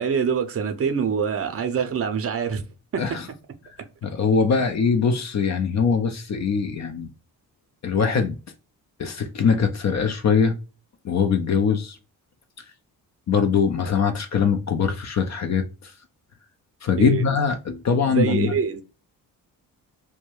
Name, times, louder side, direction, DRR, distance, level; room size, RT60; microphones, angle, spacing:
voice 1, 0.0-2.6 2.9-3.0 4.5-4.6 17.0-17.2 18.1-18.8, right 6 dB, 30° right, 0.6 m, -25 dB
voice 2, 4.0-7.1 7.8-8.3 9.0-10.6 11.0-12.0 13.3-15.9 16.8-18.5, left 6 dB, 40° left, 0.5 m, -22 dB
2.2 x 2.2 x 3.1 m
hypercardioid pair, 45°, 46 cm